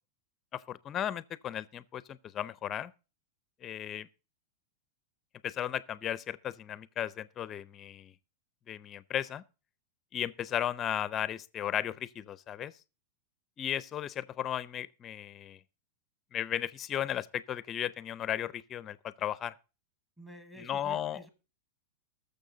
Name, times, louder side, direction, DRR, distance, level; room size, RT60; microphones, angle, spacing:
voice 1, 0.5-2.9 3.6-4.1 5.4-8.1 8.7-9.4 10.1-12.7 13.6-15.6 16.3-19.5 20.6-21.2, left 10 dB, 20° left, 0.6 m, -35 dB
voice 2, 20.2-21.3, right 1 dB, 10° right, 1.3 m, -49 dB
20.0 x 7.0 x 3.9 m
supercardioid pair, 165°, 0 cm